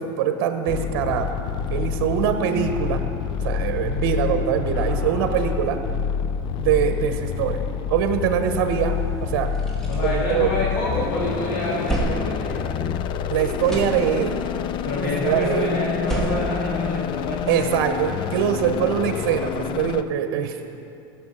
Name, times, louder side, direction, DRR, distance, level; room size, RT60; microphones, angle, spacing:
voice 1, 0.0-1.3 1.7-3.0 3.4-5.8 6.6-7.6 7.9-9.5 10.0-10.5 13.3-14.4 15.2-15.9 17.5-20.6, right 8 dB, 70° right, 7 dB, 1.0 m, -23 dB
sound 1, 0.7-20.0, left 7 dB, 40° left, 0.5 m, -27 dB
voice 2, 4.7-5.4 9.9-12.7 14.8-17.5, left 1 dB, 75° left, -7 dB, 2.9 m, -27 dB
sound 2, 9.5-11.0 11.4-13.2 13.5-14.6 15.8-17.5, right 2 dB, 5° left, 2.4 m, -31 dB
15.5 x 7.2 x 5.6 m, 2.6 s
supercardioid pair, 115°, 12 cm